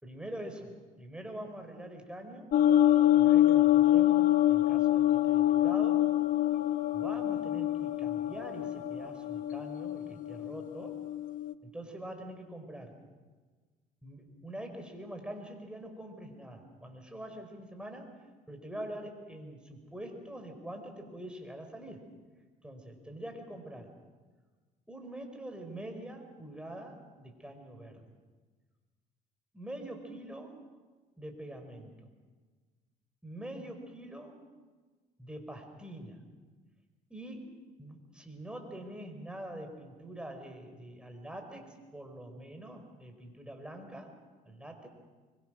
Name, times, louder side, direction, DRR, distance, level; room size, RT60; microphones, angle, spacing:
voice 1, 0.0-2.5 3.2-6.1 6.9-11.0 11.6-13.0 14.0-18.2 18.5-22.0 22.6-23.9 24.9-28.1 29.5-30.6 31.2-32.1 33.2-34.4 35.2-36.2 37.1-37.5 37.8-44.1 44.4-44.9, right 1 dB, 5° right, 4 dB, 4.8 m, -44 dB
sound 1, 2.5-11.5, left 13 dB, 55° left, 0.8 m, -26 dB
24.5 x 23.0 x 6.4 m, 1.4 s
cardioid pair, 95°, 16 cm